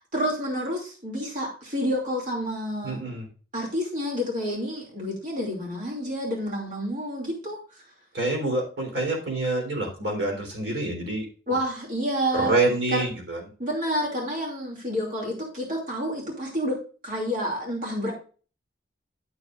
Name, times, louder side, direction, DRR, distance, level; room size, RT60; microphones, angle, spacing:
voice 1, 0.1-3.0 3.5-7.6 11.5-12.5 12.9-13.1 13.6-16.8 17.0-18.1, equal, 45° right, -1 dB, 2.6 m, -29 dB
voice 2, 2.8-3.3 8.1-11.6 12.3-13.4, right 2 dB, 85° right, 0 dB, 3.6 m, -27 dB
11.5 x 7.2 x 2.5 m, 0.37 s
head